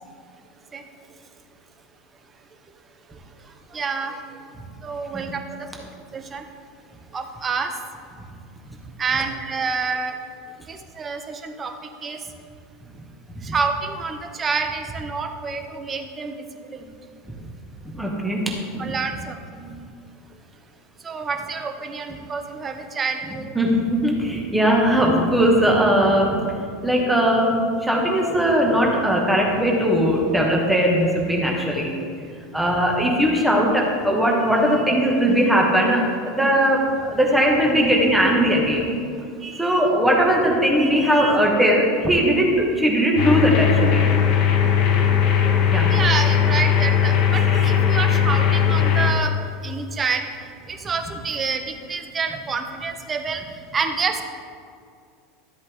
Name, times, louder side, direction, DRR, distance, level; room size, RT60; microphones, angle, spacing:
voice 1, 3.7-4.2 4.8-5.4 6.1-6.5 7.1-7.7 9.0-10.1 10.7-11.7 12.0-12.2 13.4-16.4 16.7-17.0 18.8-19.7 21.0-23.5 35.3-35.4 39.4-39.8 40.8-41.4 45.9-49.3 49.6-50.2 50.7-53.4 53.7-54.2, right 5 dB, 25° right, 5 dB, 1.2 m, -28 dB
voice 2, 18.0-18.4 18.7-18.9 23.6-26.5 26.8-27.5 27.8-31.9 32.5-38.8 39.6-44.0 45.7-45.9, equal, 5° right, -2 dB, 2.1 m, -19 dB
sound 1, 43.2-49.1, left 8 dB, 50° left, 1.4 m, -18 dB
13.0 x 7.8 x 3.9 m, 2.3 s
hypercardioid pair, 80°, 0 cm